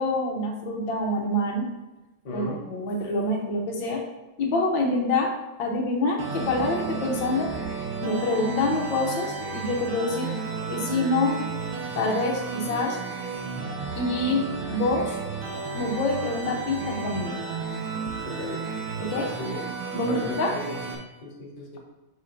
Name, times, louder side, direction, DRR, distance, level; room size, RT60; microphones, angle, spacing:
voice 1, 0.0-1.7 2.3-4.0 4.4-5.3 5.6-7.5 8.0-10.3 10.7-11.4 12.0-13.0 14.0-15.2 15.7-17.4 19.0-19.3 19.9-20.5, left 2 dB, 70° left, 1 dB, 1.7 m, -26 dB
voice 2, 2.2-2.6 18.2-18.7 19.0-19.6 19.9-21.8, left 2 dB, 35° left, -1 dB, 0.8 m, -36 dB
sound 1, 6.2-21.0, right 4 dB, 75° right, 1.9 m, -33 dB
7.6 x 5.6 x 2.6 m, 1.0 s
omnidirectional pair, 2.3 m